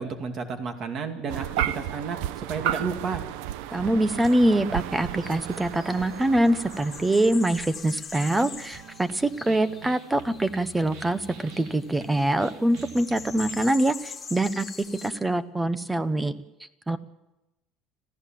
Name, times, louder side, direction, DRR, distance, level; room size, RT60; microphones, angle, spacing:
voice 1, 0.0-3.2, right 5 dB, 40° right, 6 dB, 2.4 m, -32 dB
sound 1, 1.3-7.9, right 12 dB, 90° right, 0.8 m, -33 dB
voice 2, 3.7-14.7 15.0-16.4 16.9-17.0, right 1 dB, 10° right, 14 dB, 0.9 m, -24 dB
sound 2, 4.2-15.1, left 6 dB, 20° left, 2.4 m, -44 dB
sound 3, 8.1-13.7, right 8 dB, 75° right, 1.9 m, -46 dB
26.5 x 15.5 x 7.6 m, 0.98 s
cardioid pair, 155°, 0 cm